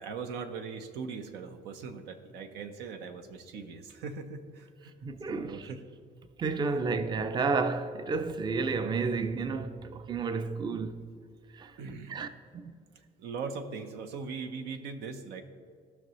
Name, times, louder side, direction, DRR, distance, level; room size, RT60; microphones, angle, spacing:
voice 1, 0.0-4.9 5.3-5.8 6.7-6.8 11.8-12.2 13.2-15.4, right 5 dB, 90° right, 0.8 m, -40 dB
voice 2, 5.0-5.7 6.4-11.0 11.5-11.7 12.1-12.3 12.5-12.7, right 4 dB, 25° right, 0.5 m, -31 dB
16.0 x 6.0 x 3.1 m
cardioid pair, 110°, 17 cm